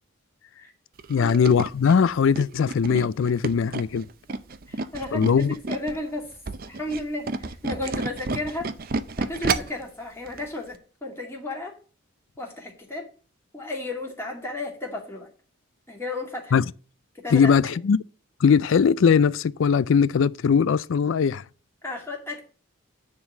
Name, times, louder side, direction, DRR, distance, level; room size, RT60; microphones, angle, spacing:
Tools, 1.0-6.0 6.3-9.8 10.3-10.4 10.7-10.8, right 3 dB, 45° right, 0.6 m, -30 dB
voice 1, 1.1-4.1 5.1-5.6 16.5-16.6 17.3-18.0 18.4-21.4, left 6 dB, 65° left, 0.4 m, -20 dB
voice 2, 4.7-6.3 6.7-8.7 9.2-11.7 12.4-13.1 13.5-15.3 15.9-16.6 17.1-17.5 21.8-22.4, left 2 dB, 10° left, 2.3 m, -33 dB
9.6 x 3.9 x 7.3 m
head